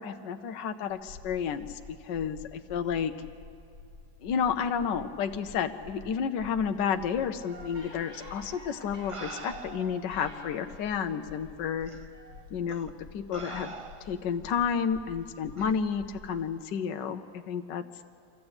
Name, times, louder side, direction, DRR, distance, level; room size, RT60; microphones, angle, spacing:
voice 1, 0.0-3.1 4.2-11.9 12.5-13.7 14.0-17.9, left 7 dB, 80° left, 7 dB, 1.4 m, -31 dB
sound 1, 0.9-16.3, left 4 dB, 65° right, 7.8 m, -50 dB
sound 2, 7.4-10.8 12.1-12.3 12.6-12.7, right 1 dB, 20° right, 6.9 m, -48 dB
sound 3, 8.4-8.6 9.1-10.0 10.9-11.0 11.8-12.0 12.7-12.9 13.3-14.3 15.6-15.8, right 3 dB, 50° right, 0.4 m, -43 dB
25.0 x 14.5 x 8.8 m, 2.3 s
omnidirectional pair, 1.9 m